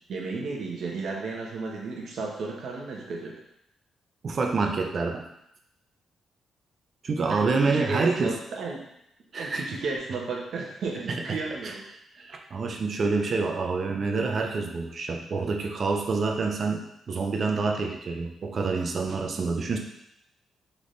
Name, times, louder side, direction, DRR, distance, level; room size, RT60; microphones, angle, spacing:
voice 1, 0.1-3.4 7.3-8.8 9.4-11.8, right 3 dB, 65° right, -1 dB, 0.9 m, -33 dB
voice 2, 4.2-5.3 7.0-8.3 9.3-9.6 11.1-11.2 11.6-11.7 12.2-19.8, right 4 dB, 40° right, 3 dB, 0.5 m, -27 dB
4.0 x 3.5 x 3.2 m, 0.78 s
cardioid pair, 150°, 0 cm